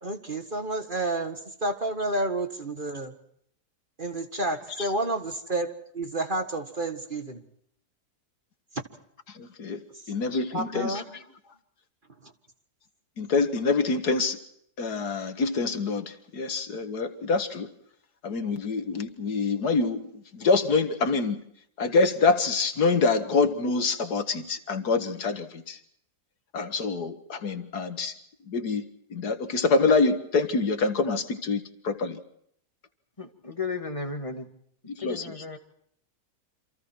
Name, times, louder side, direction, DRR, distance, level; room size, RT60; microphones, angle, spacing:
voice 1, 0.0-3.1 4.0-7.4 9.9-11.0 12.2-12.3, right 2 dB, 30° right, 7 dB, 1.9 m, -30 dB
voice 2, 9.3-11.0 13.2-14.4 14.8-17.7 18.2-21.4 21.8-25.8 26.5-28.2 28.5-32.2 34.9-35.4, left 4 dB, 75° left, 9 dB, 2.2 m, -26 dB
voice 3, 33.2-34.5 35.0-35.6, left 4 dB, 20° left, 6 dB, 2.3 m, -34 dB
28.5 x 27.0 x 4.6 m, 0.69 s
omnidirectional pair, 1.7 m